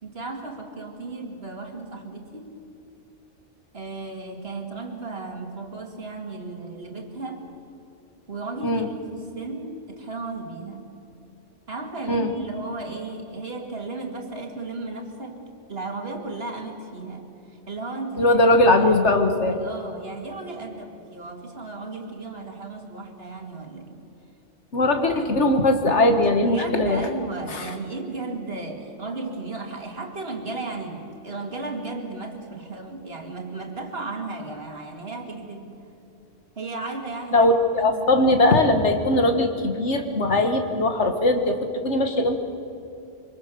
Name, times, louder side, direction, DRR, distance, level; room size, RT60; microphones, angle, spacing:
voice 1, 0.0-2.5 3.7-7.5 8.3-10.9 11.7-15.4 15.7-18.4 18.9-19.2 19.5-23.9 26.5-35.7 36.6-38.4, right 3 dB, 50° right, 3 dB, 2.5 m, -35 dB
voice 2, 18.2-19.6 24.7-27.1 27.5-27.6 37.3-41.6 41.8-42.4, left 2 dB, 65° left, 6 dB, 1.9 m, -20 dB
25.0 x 24.5 x 7.0 m, 2.7 s
omnidirectional pair, 1.3 m